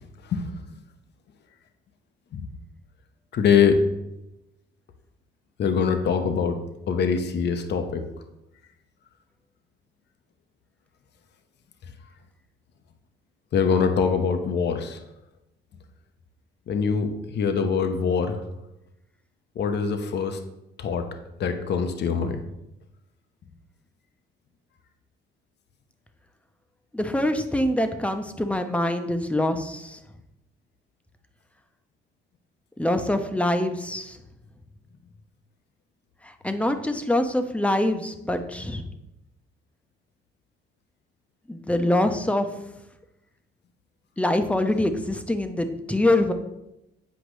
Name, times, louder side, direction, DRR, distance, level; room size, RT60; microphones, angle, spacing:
voice 1, 0.2-0.5 2.3-2.5 3.3-3.8 5.6-6.6 6.9-8.1 13.5-15.0 16.7-18.4 19.6-20.4 20.8-21.1 21.4-22.4, left 6 dB, 60° left, 7 dB, 0.7 m, -23 dB
voice 2, 26.9-30.0 32.8-34.1 36.4-38.8 41.5-42.5 44.2-46.3, left 1 dB, 5° left, 7 dB, 0.7 m, -24 dB
8.2 x 4.9 x 3.1 m, 0.89 s
cardioid pair, 90°, 20 cm